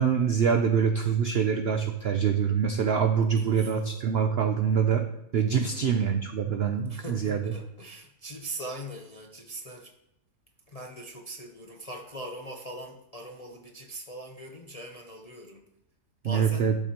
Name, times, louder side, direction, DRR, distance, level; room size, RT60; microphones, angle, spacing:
voice 1, 0.0-5.1 5.3-7.5 16.2-16.7, right 7 dB, 75° right, 7 dB, 0.5 m, -25 dB
voice 2, 3.4-4.0 5.7-6.2 6.9-9.9 10.7-15.6 16.2-16.7, right 1 dB, 45° left, 1 dB, 0.5 m, -41 dB
12.0 x 7.4 x 2.9 m, 0.87 s
omnidirectional pair, 1.7 m